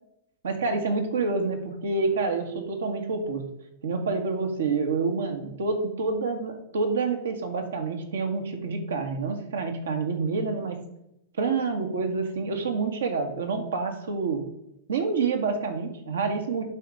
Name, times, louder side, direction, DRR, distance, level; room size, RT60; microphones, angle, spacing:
voice 1, 0.4-3.4 3.8-10.8 11.4-14.4 14.9-16.6, right 4 dB, 70° right, 5 dB, 1.5 m, -28 dB
10.5 x 4.3 x 5.0 m, 0.81 s
hypercardioid pair, 100°, 0 cm